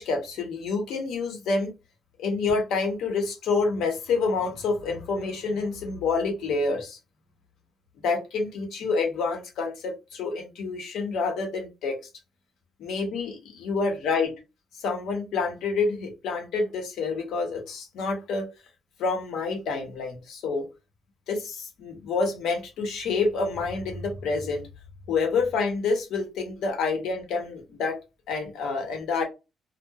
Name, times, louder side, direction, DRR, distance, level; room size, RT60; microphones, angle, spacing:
voice 1, 0.0-1.7 2.2-7.0 8.0-12.0 12.8-14.3 14.8-18.5 19.0-20.7 21.3-24.7 25.1-28.0 28.3-29.2, left 4 dB, 85° left, 0.9 m, -28 dB
2.8 x 2.1 x 2.2 m
cardioid pair, 90°, 0 cm